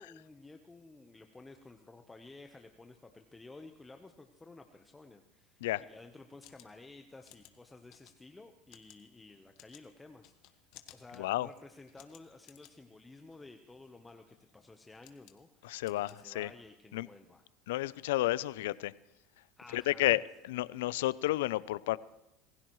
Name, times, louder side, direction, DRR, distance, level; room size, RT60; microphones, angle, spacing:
voice 1, 0.0-10.6 10.9-17.4 19.6-20.2, left 3 dB, 10° left, 0.9 m, -54 dB
sound 1, 6.3-16.8, left 14 dB, 65° left, 1.4 m, -61 dB
voice 2, 11.2-11.5 15.6-16.5 16.9-17.1 17.7-18.9 19.7-22.0, left 16 dB, 80° left, 0.4 m, -31 dB
26.5 x 16.0 x 3.1 m
supercardioid pair, 105°, 0 cm